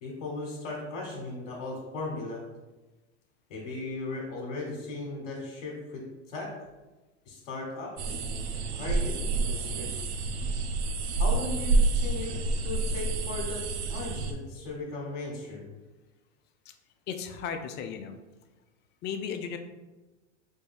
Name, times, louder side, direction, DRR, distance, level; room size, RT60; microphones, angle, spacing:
voice 1, 0.0-2.4 3.5-6.5 7.3-10.1 11.1-12.3 12.6-15.7, left 2 dB, 55° left, -3 dB, 1.2 m, -37 dB
sound 1, 8.0-14.3, right 3 dB, 65° right, 0.6 m, -28 dB
voice 2, 17.1-18.2 19.0-19.6, left 7 dB, 30° left, 7 dB, 0.4 m, -35 dB
4.3 x 2.6 x 3.3 m, 1.1 s
hypercardioid pair, 95°, 36 cm